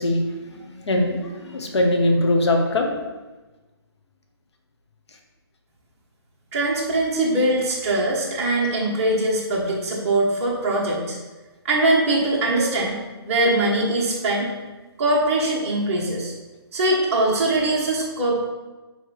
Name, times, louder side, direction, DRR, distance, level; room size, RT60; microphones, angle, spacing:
voice 1, 0.0-3.0, left 1 dB, 80° left, 3 dB, 1.2 m, -22 dB
voice 2, 6.5-11.2 11.6-13.0 13.3-14.5 15.0-16.3 16.7-18.4, right 2 dB, 30° right, -5 dB, 1.2 m, -22 dB
9.3 x 3.2 x 3.3 m, 1.2 s
hypercardioid pair, 165°, 14 cm